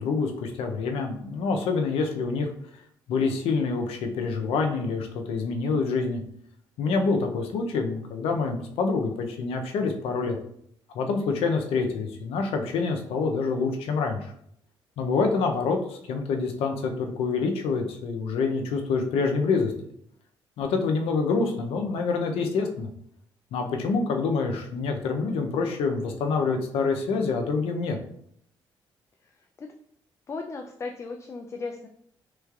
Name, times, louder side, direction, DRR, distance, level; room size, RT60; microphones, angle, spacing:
voice 1, 0.0-2.5 3.1-6.2 6.8-10.4 10.9-14.3 15.0-19.7 20.6-22.9 23.5-28.0, left 4 dB, 85° left, 4 dB, 0.5 m, -26 dB
voice 2, 29.2-29.7 30.3-31.9, left 4 dB, 30° left, 3 dB, 0.3 m, -36 dB
3.3 x 3.1 x 2.4 m, 0.69 s
cardioid pair, 80°, 10 cm